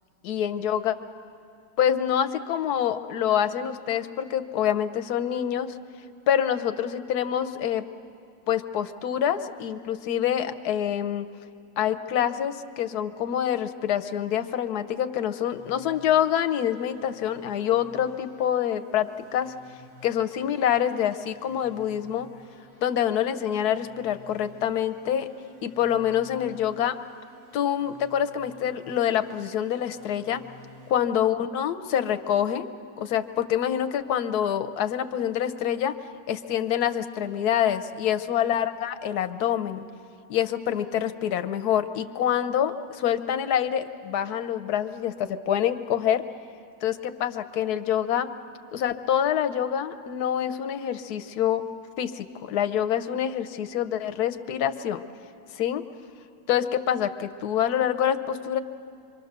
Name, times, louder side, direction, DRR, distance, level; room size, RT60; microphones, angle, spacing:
voice 1, 0.2-1.0 1.8-5.8 6.3-7.8 8.5-11.3 11.8-19.5 20.0-22.3 22.8-25.3 25.6-27.0 27.5-30.4 30.9-32.7 33.0-35.9 36.3-39.8 40.3-46.2 46.8-48.3 48.7-51.7 52.0-55.0 55.5-55.8 56.5-58.6, left 9 dB, 65° left, 9 dB, 1.2 m, -26 dB
sound 1, 15.5-30.9, left 1 dB, 70° right, 5.7 m, -53 dB
26.5 x 23.5 x 6.7 m, 2.5 s
omnidirectional pair, 2.0 m